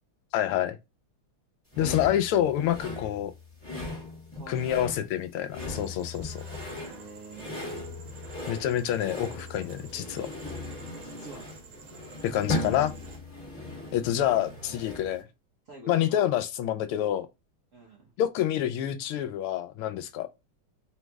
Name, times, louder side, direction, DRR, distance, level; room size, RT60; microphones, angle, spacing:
voice 1, 0.3-0.8 1.8-3.3 4.5-6.4 8.5-10.3 12.2-12.9 13.9-15.2 15.9-17.3 18.2-20.3, left 11 dB, 85° left, 1.5 m, -27 dB
sound 1, 1.7-15.2, left 2 dB, 5° left, 1.6 m, -38 dB
voice 2, 4.3-5.0 6.8-7.6 11.0-11.5 13.8-14.3 15.7-16.3 17.7-18.1, right 2 dB, 55° right, 0.9 m, -47 dB
sound 2, 5.6-13.2, right 6 dB, 80° right, 1.7 m, -51 dB
3.8 x 3.1 x 3.4 m
omnidirectional pair, 2.4 m